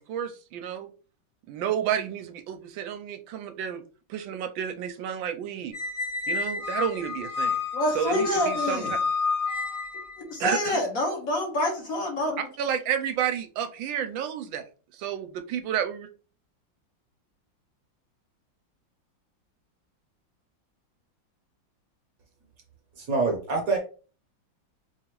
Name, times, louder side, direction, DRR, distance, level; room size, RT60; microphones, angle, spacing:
voice 1, 0.1-0.9 1.5-3.8 4.1-5.7 6.3-7.6 7.9-9.0 10.4-10.8 12.6-14.6 14.9-16.1, right 9 dB, 80° right, 7 dB, 1.3 m, -31 dB
Squeak, 5.7-10.2, left 5 dB, 80° left, 2.9 m, -30 dB
voice 2, 7.7-8.9 10.2-12.4, left 1 dB, 50° left, -1 dB, 1.4 m, -27 dB
voice 3, 23.0-23.8, right 3 dB, 55° right, 2 dB, 1.2 m, -25 dB
4.9 x 2.7 x 3.0 m, 0.38 s
omnidirectional pair, 2.1 m